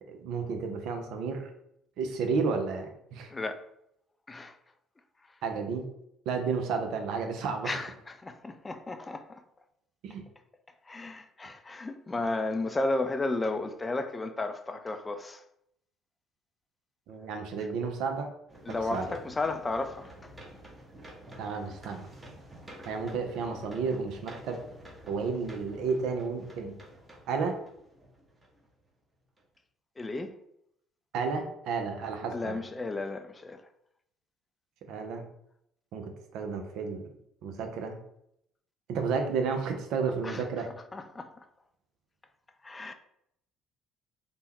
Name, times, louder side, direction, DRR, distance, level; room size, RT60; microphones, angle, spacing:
voice 1, 0.1-1.5 2.0-3.3 5.4-5.9 6.3-7.9 10.0-10.2 17.1-18.3 18.9-19.1 21.4-22.1 22.9-24.6 25.1-26.8 27.3-27.6 31.1-32.6 34.9-35.3 35.9-37.1 37.4-38.0 38.9-40.7, right 5 dB, 65° right, 0.5 m, -32 dB
voice 2, 3.3-3.6 4.3-4.6 7.6-9.4 10.9-15.4 18.7-20.1 30.0-30.3 32.3-33.6 40.2-40.4 40.9-41.3 42.6-42.9, left 2 dB, 25° left, 0.3 m, -33 dB
sound 1, 18.5-28.8 29.4-29.5, right 1 dB, 20° right, 1.0 m, -50 dB
3.4 x 2.2 x 2.9 m
hypercardioid pair, 55°, 0 cm